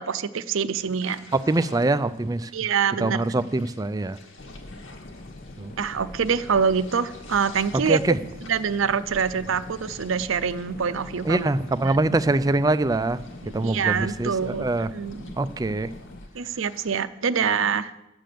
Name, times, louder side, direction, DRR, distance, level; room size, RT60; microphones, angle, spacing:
voice 1, 0.0-1.3 2.5-3.4 5.8-8.0 8.5-11.5 11.8-12.2 13.4-15.2 16.3-17.9, right 6 dB, 65° right, 13 dB, 0.5 m, -25 dB
sound 1, 0.7-17.0, left 2 dB, 75° left, 1.8 m, -51 dB
voice 2, 1.3-2.5 3.0-4.2 5.6-5.7 7.7-8.2 11.2-13.2 13.5-14.9 15.4-15.9, right 2 dB, 15° right, 14 dB, 0.3 m, -24 dB
sound 2, 4.4-16.3, left 2 dB, 40° left, 0.6 m, -43 dB
10.5 x 6.6 x 7.7 m, 0.91 s
head